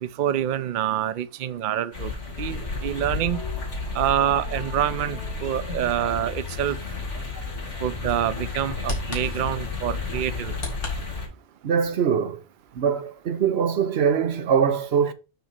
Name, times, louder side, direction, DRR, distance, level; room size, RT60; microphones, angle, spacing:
voice 1, 0.0-2.1 2.4-3.4 3.9-6.8 7.8-10.5, right 11 dB, 80° right, 0.4 m, -26 dB
sound 1, 1.9-11.3, left 4 dB, 60° left, 3.0 m, -32 dB
sound 2, 2.4-6.8 7.2-8.4, left 3 dB, 85° left, 1.5 m, -45 dB
Bird vocalization bird call bird song, 4.9-10.9, left 1 dB, 40° left, 2.3 m, -39 dB
voice 2, 11.6-12.4 12.7-15.1, right 7 dB, 55° right, 0.9 m, -22 dB
6.5 x 3.9 x 6.4 m
omnidirectional pair, 1.4 m